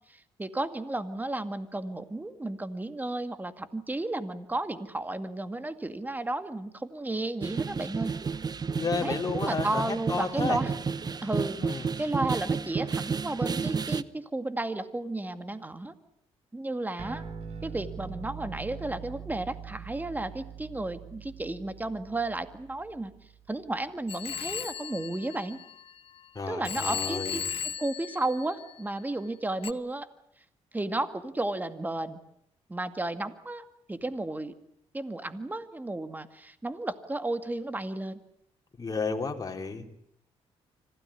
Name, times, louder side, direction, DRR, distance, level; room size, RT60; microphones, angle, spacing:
voice 1, 0.1-8.1 9.0-10.7 11.2-15.9 16.5-17.2 17.6-23.1 23.5-25.6 26.5-30.1 30.7-32.2 32.7-34.5 34.9-38.2, right 2 dB, 15° right, 10 dB, 2.1 m, -33 dB
sound 1, 7.4-14.0, right 5 dB, 35° right, 0.9 m, -31 dB
voice 2, 8.7-10.6 11.6-11.9 26.4-27.4 38.8-39.8, left 4 dB, 30° left, 3 dB, 3.6 m, -32 dB
sound 2, 17.0-23.8, right 7 dB, 75° right, 5.3 m, -43 dB
Telephone, 24.1-26.2 26.6-29.0 29.6-29.7, left 7 dB, 55° left, 1.0 m, -36 dB
26.0 x 16.5 x 9.9 m, 0.74 s
cardioid pair, 90°, 11 cm